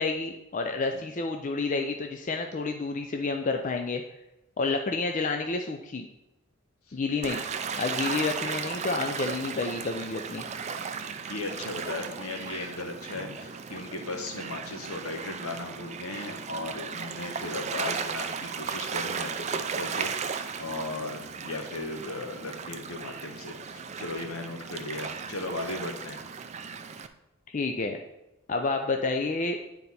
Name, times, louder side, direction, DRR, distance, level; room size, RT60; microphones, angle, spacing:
voice 1, 0.0-4.0 4.6-6.1 6.9-7.4 7.8-10.4 27.5-28.0 28.5-29.6, left 3 dB, 35° left, 4 dB, 0.4 m, -29 dB
Gull seagull / Waves surf, 7.2-27.1, right 6 dB, 30° right, 0.4 m, -36 dB
voice 2, 11.0-26.3, left 2 dB, 75° left, 3 dB, 1.2 m, -37 dB
9.4 x 4.0 x 4.2 m, 0.91 s
head